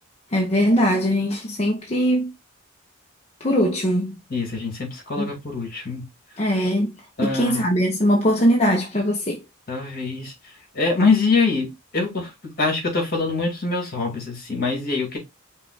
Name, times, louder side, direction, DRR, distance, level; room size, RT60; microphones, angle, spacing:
voice 1, 0.3-2.3 3.4-4.1 5.2-5.3 6.4-6.9 7.2-9.4, equal, 30° left, 0.8 m, -21 dB
voice 2, 4.3-6.0 7.2-7.7 9.7-10.3 10.7-12.3 12.6-15.2, left 4 dB, 45° left, 2.1 m, -24 dB
5.5 x 2.4 x 3.9 m
head